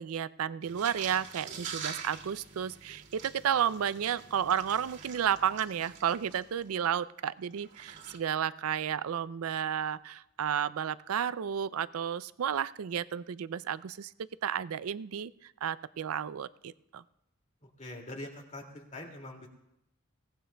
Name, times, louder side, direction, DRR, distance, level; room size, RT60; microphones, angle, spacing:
voice 1, 0.0-14.1 14.4-17.0, right 8 dB, 85° right, 16 dB, 0.4 m, -32 dB
sound 1, 0.6-6.8 7.5-8.2, right 6 dB, 60° right, 2.0 m, -45 dB
voice 2, 17.8-19.5, left 1 dB, 35° left, 1 dB, 2.3 m, -43 dB
21.5 x 18.0 x 2.3 m, 0.85 s
head